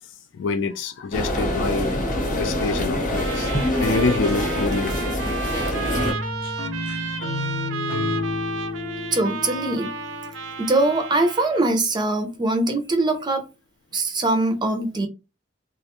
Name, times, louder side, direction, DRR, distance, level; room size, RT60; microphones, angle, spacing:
voice 1, 0.3-3.5 3.8-4.9 5.8-7.4, left 4 dB, 70° left, 0.3 m, -28 dB
sound 1, 1.1-6.1, left 1 dB, 40° left, 0.8 m, -25 dB
Trumpet, 3.2-11.7, right 5 dB, 85° right, 0.5 m, -33 dB
sound 2, 5.9-11.0, left 3 dB, 85° left, 0.7 m, -31 dB
voice 2, 9.1-9.9 10.6-13.4 13.9-15.1, right 2 dB, 25° right, 0.4 m, -22 dB
2.4 x 2.2 x 2.9 m
head